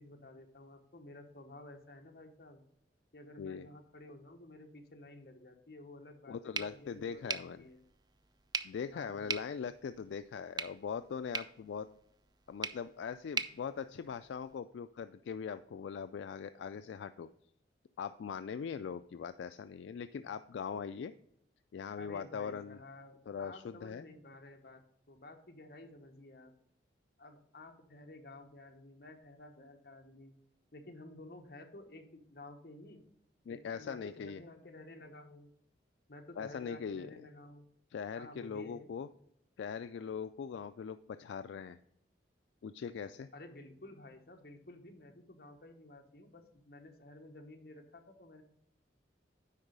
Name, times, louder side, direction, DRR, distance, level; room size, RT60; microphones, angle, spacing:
voice 1, 0.0-2.6 3.1-7.8 8.9-9.3 21.9-26.5 27.2-30.3 30.7-33.0 33.5-35.5 36.1-37.7 38.2-38.9 43.3-48.4, left 2 dB, 55° left, 4 dB, 1.1 m, -53 dB
voice 2, 6.3-7.6 8.6-11.9 12.5-17.3 18.0-21.1 21.7-22.8 23.3-24.0 33.5-34.4 36.4-37.1 37.9-39.1 39.6-41.8 42.6-43.3, left 6 dB, 80° left, 11 dB, 0.3 m, -41 dB
sound 1, 6.5-14.6, right 5 dB, 20° right, 0.4 m, -43 dB
9.9 x 4.0 x 5.1 m, 0.73 s
head